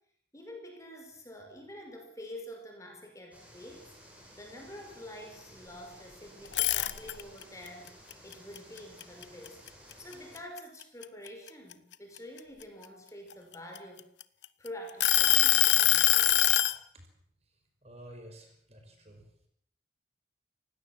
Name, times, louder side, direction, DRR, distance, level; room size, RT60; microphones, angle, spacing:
voice 1, 0.3-3.9 4.4-9.6 10.0-14.1 14.6-16.8, left 1 dB, 15° left, 3 dB, 5.3 m, -47 dB
sound 1, 3.3-10.4, equal, 10° right, 7.5 m, -55 dB
sound 2, 6.5-7.4 7.9-9.7 10.1-10.4 10.8-12.6 13.3-14.5 15.0-16.8, left 14 dB, 90° left, 1.0 m, -23 dB
voice 2, 17.8-19.2, right 1 dB, 35° right, 4 dB, 5.4 m, -50 dB
29.0 x 17.0 x 7.4 m, 0.68 s
head